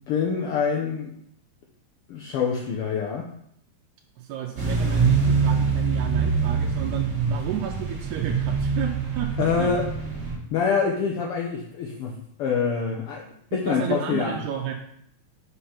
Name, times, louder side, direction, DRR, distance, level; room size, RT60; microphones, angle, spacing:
voice 1, 0.1-1.1 2.1-3.3 9.4-9.9 10.5-14.4, left 6 dB, 70° left, -1 dB, 1.3 m, -26 dB
voice 2, 4.2-9.7 13.5-14.7, right 10 dB, 90° right, 1 dB, 2.1 m, -32 dB
sound 1, 4.6-10.4, right 5 dB, 30° right, 1.5 m, -24 dB
5.6 x 5.0 x 5.7 m, 0.70 s
omnidirectional pair, 3.5 m